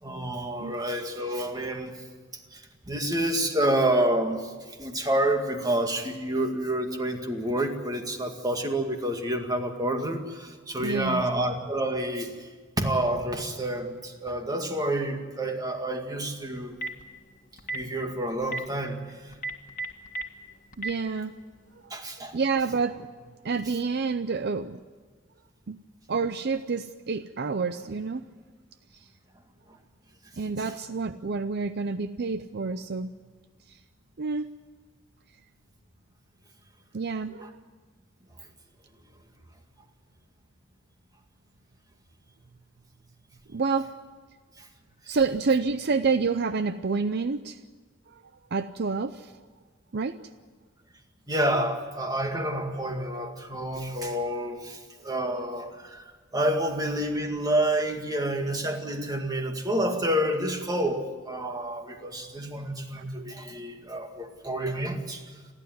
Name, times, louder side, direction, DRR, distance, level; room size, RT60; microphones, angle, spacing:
voice 1, 0.0-2.0 2.5-12.5 12.8-16.8 17.7-19.3 21.9-22.4 44.6-44.7 51.3-56.0 56.3-65.2, right 1 dB, 20° right, 4 dB, 2.1 m, -29 dB
voice 2, 10.8-11.3 20.8-21.3 21.8-22.0 22.3-23.1 23.4-24.8 25.7-25.8 26.1-28.3 28.9-29.1 30.3-33.1 33.7-33.8 34.2-34.5 36.9-37.6 43.5-43.9 45.1-47.6 48.1-48.2 48.5-49.3 49.9-50.2, right 4 dB, 55° right, 12 dB, 0.6 m, -28 dB
Telephone, 16.6-17.0 17.6-17.8 18.4-18.6 19.3-20.2 20.7-20.9, right 3 dB, 45° left, 1.8 m, -31 dB
29.5 x 12.0 x 9.5 m, 1.4 s
head